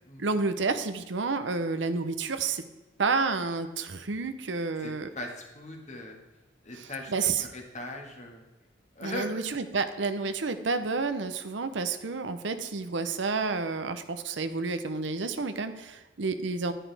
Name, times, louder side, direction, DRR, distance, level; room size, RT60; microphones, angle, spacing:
voice 1, 0.2-2.6 3.0-5.1 6.8-7.4 9.0-16.7, right 4 dB, 75° right, 9 dB, 0.8 m, -30 dB
voice 2, 4.8-6.2 6.6-7.1 7.4-8.5 9.0-9.4, left 2 dB, 40° left, 1 dB, 1.8 m, -39 dB
11.0 x 9.9 x 3.4 m, 1.1 s
head